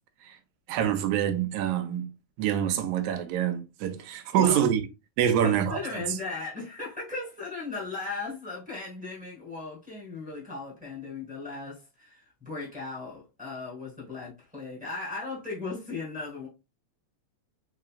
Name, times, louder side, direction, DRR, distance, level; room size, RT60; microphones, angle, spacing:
voice 1, 0.7-2.1 2.4-4.8 5.2-5.8, right 10 dB, 75° right, 1.9 m, -26 dB
voice 2, 4.3-4.6 5.4-16.5, left 3 dB, 5° right, 1.1 m, -37 dB
4.2 x 3.8 x 2.4 m
omnidirectional pair, 3.4 m